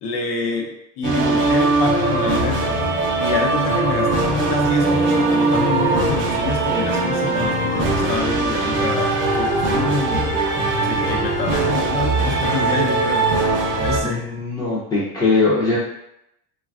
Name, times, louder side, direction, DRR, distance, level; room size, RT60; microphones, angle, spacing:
voice 1, 0.0-2.8 3.2-10.4 10.8-13.3 13.7-14.3, left 3 dB, 75° left, 0 dB, 0.7 m, -27 dB
sound 1, 1.0-14.0, right 2 dB, 35° right, 0.6 m, -20 dB
sound 2, 4.6-9.7 10.0-10.4, right 6 dB, 75° right, 0.6 m, -34 dB
voice 2, 14.0-15.8, left 3 dB, 10° left, -7 dB, 0.4 m, -20 dB
3.2 x 2.3 x 2.4 m, 0.82 s
cardioid pair, 145°, 35 cm